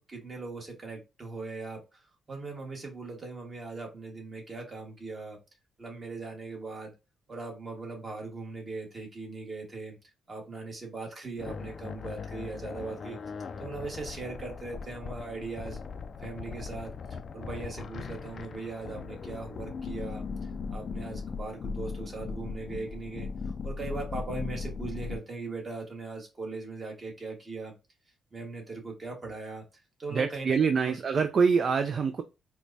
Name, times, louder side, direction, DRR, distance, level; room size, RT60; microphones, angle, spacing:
voice 1, 0.1-5.4 5.8-6.9 7.3-10.0 10.3-13.2 13.6-15.8 16.2-23.3 23.6-27.7 28.3-29.6 30.0-30.9, right 3 dB, 30° right, 1.5 m, -39 dB
sound 1, 11.4-25.2, left 5 dB, 50° left, 0.3 m, -38 dB
voice 2, 30.1-32.2, right 5 dB, 50° right, 0.4 m, -25 dB
4.4 x 2.2 x 2.6 m
cardioid pair, 90°, 0 cm